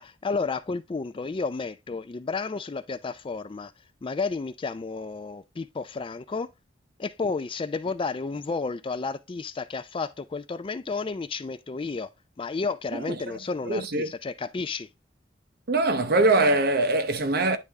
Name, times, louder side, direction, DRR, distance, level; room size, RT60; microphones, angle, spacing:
voice 1, 0.0-3.7 4.0-6.5 7.0-12.1 12.4-14.9, left 4 dB, 25° left, 0.4 m, -32 dB
voice 2, 13.7-14.1 15.7-17.6, right 2 dB, 55° right, 0.8 m, -22 dB
9.6 x 3.4 x 3.5 m
head